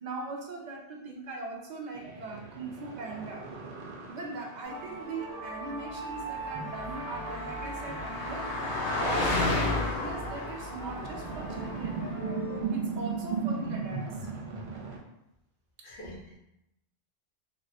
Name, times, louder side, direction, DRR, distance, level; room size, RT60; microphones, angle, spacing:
voice 1, 0.0-3.5 4.1-8.5 8.9-12.0 12.7-14.1 15.8-15.9, right 3 dB, 55° right, 0 dB, 0.5 m, -40 dB
sound 1, 1.9-5.8 6.9-7.0 8.9-9.0 9.3-15.0, right 5 dB, 70° right, 0.9 m, -37 dB
sound 2, 4.6-12.6, right 2 dB, 20° right, 0.9 m, -41 dB
Car passing by, 6.2-12.1, left 2 dB, 80° left, 1.1 m, -32 dB
voice 2, 15.8-16.4, equal, 50° left, -6 dB, 1.1 m, -46 dB
3.5 x 2.1 x 2.7 m, 0.85 s
omnidirectional pair, 1.1 m